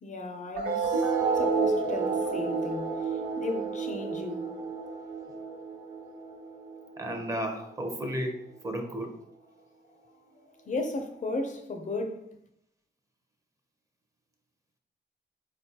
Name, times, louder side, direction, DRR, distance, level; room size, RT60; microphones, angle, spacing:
voice 1, 0.0-4.5 10.7-12.3, left 2 dB, 45° left, 0.4 m, -35 dB
sound 1, 0.5-7.5, right 4 dB, 65° right, 1.0 m, -30 dB
voice 2, 7.0-9.2, equal, 20° right, 0.5 m, -33 dB
4.0 x 2.2 x 2.7 m
cardioid pair, 75°, 18 cm